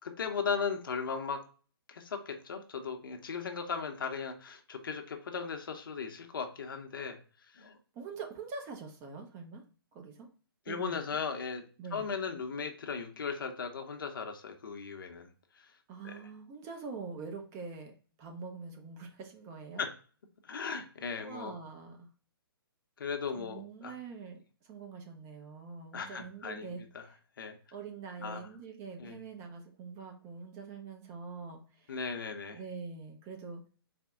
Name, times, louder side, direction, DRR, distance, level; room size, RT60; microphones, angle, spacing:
voice 1, 0.0-1.4 1.9-7.2 7.5-7.8 10.7-11.6 11.9-15.3 15.6-15.7 16.0-16.2 19.8-19.9 20.4-21.6 23.0-23.9 25.9-27.0 27.4-27.6 28.2-28.4 29.0-29.1 31.9-32.6, left 5 dB, 60° left, 5 dB, 0.7 m, -37 dB
voice 2, 7.9-9.6 9.9-10.3 10.7-11.0 11.8-12.1 15.9-19.8 21.2-22.1 23.3-27.2 27.7-32.0 32.5-33.6, right 5 dB, 20° right, 3 dB, 0.6 m, -44 dB
4.2 x 2.1 x 3.6 m, 0.39 s
figure-of-eight pair, 130°, 13 cm